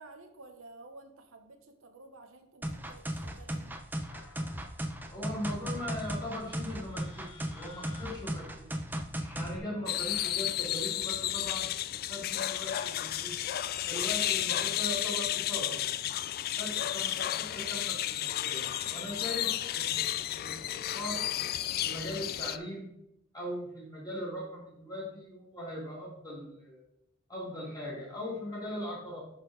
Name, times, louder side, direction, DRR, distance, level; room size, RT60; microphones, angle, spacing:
voice 1, 0.0-3.8, right 2 dB, 70° right, 6 dB, 0.9 m, -52 dB
sound 1, 2.6-9.6, right 1 dB, 10° right, 0.6 m, -36 dB
sound 2, 4.1-8.4 9.1-10.8 11.8-20.0, left 4 dB, 80° left, 1.3 m, -57 dB
voice 2, 5.1-8.8 9.3-11.7 12.1-13.4 13.8-15.8 16.6-20.0 20.3-21.2 21.8-22.9 23.3-26.8 27.3-29.2, left 1 dB, 20° left, -5 dB, 3.0 m, -40 dB
sound 3, 9.9-22.6, left 12 dB, 45° left, 0.3 m, -32 dB
10.5 x 4.4 x 3.9 m, 0.78 s
head